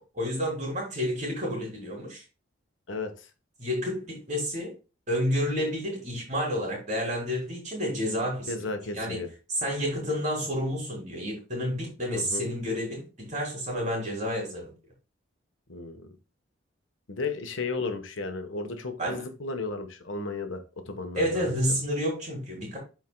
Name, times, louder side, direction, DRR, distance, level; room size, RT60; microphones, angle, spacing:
voice 1, 0.1-2.2 3.6-4.7 5.1-8.7 8.9-9.2 9.5-14.7 19.0-19.2 21.1-22.8, equal, 35° right, 3.6 m, -30 dB
voice 2, 2.9-3.3 8.5-9.3 12.1-12.4 15.7-16.1 17.1-21.8, left 3 dB, 75° left, 1.2 m, -34 dB
12.5 x 4.6 x 2.2 m
head